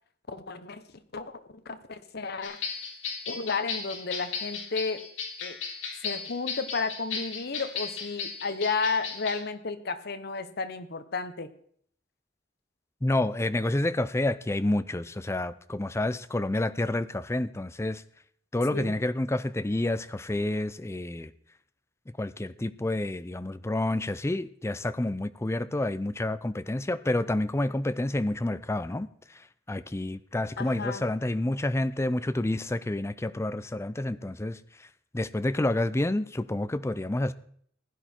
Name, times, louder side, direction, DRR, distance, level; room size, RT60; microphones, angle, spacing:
voice 1, 0.3-2.6 3.3-5.1 5.4-5.6 6.0-11.5 18.7-19.0 30.6-31.1, left 4 dB, 55° left, 1.0 m, -33 dB
sound 1, 2.4-9.4, left 5 dB, 75° left, 3.6 m, -36 dB
voice 2, 13.0-18.0 18.5-21.3 22.2-34.9 35.1-37.3, left 1 dB, 15° left, 0.5 m, -29 dB
15.5 x 10.0 x 4.4 m
head